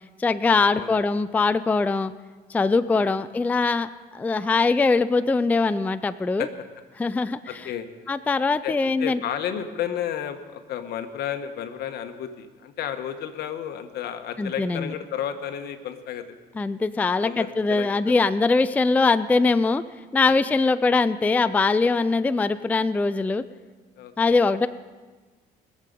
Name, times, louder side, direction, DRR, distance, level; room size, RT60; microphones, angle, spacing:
voice 1, 0.2-2.1 2.5-6.5 7.0-7.7 8.1-9.2 14.4-14.9 16.6-19.8 20.1-23.4 24.2-24.7, left 3 dB, 10° left, 13 dB, 0.3 m, -22 dB
voice 2, 7.5-7.9 8.6-16.2 17.2-18.2 20.2-20.4 24.0-24.5, left 9 dB, 70° left, 8 dB, 1.2 m, -32 dB
22.0 x 7.5 x 5.2 m, 1.3 s
cardioid pair, 110°, 17 cm